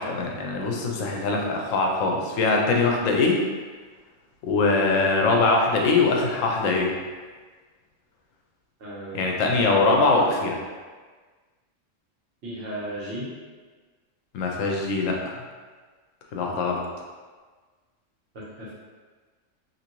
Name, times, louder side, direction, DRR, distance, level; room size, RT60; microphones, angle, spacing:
voice 1, 0.0-3.4 4.4-7.0 9.1-10.6 14.3-15.4 16.3-16.8, left 3 dB, 85° left, 0 dB, 1.0 m, -22 dB
voice 2, 8.8-9.3 12.4-13.3 18.3-18.7, right 1 dB, 65° right, -7 dB, 1.2 m, -35 dB
2.8 x 2.6 x 2.9 m, 1.4 s
omnidirectional pair, 1.3 m